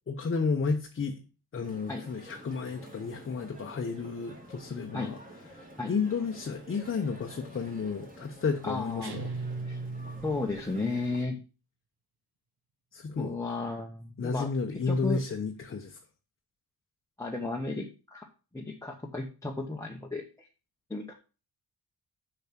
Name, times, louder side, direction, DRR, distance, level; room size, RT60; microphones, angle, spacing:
voice 1, 0.1-1.2 1.5-5.2 5.5-9.3 12.9-13.4 14.2-16.0, left 5 dB, 30° left, 0.9 m, -32 dB
sound 1, 1.6-11.2, right 1 dB, 20° right, 2.5 m, -50 dB
voice 2, 8.6-9.1 9.6-9.8 10.2-11.4 13.2-14.5 14.9-15.2 17.2-18.2 18.5-20.5 20.9-21.1, left 2 dB, 5° left, 1.0 m, -34 dB
sound 2, 9.0-10.7, right 3 dB, 70° right, 1.8 m, -37 dB
7.2 x 6.0 x 5.9 m
cardioid pair, 130°, 40 cm